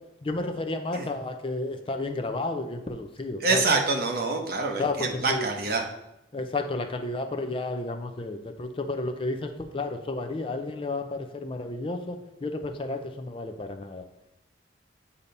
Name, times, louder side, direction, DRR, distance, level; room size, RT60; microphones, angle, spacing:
voice 1, 0.2-3.6 4.8-5.5 6.3-14.0, left 2 dB, 30° left, 6 dB, 0.5 m, -32 dB
voice 2, 3.4-5.8, right 3 dB, 55° right, 2 dB, 0.9 m, -26 dB
8.3 x 2.8 x 5.2 m, 0.92 s
head